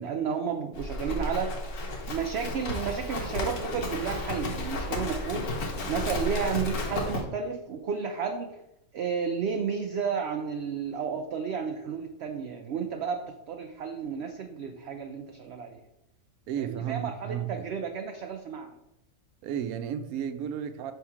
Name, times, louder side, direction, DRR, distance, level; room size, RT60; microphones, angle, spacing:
voice 1, 0.0-1.5 2.1-5.5 5.9-8.6 8.9-15.8 16.6-18.7, right 6 dB, 65° right, 0.7 m, -32 dB
Livestock farm animals working animals, 0.7-7.2, left 2 dB, 90° left, 1.5 m, -33 dB
voice 2, 16.5-17.7 19.4-20.9, right 9 dB, 80° right, 1.1 m, -33 dB
5.7 x 3.5 x 4.7 m
omnidirectional pair, 1.5 m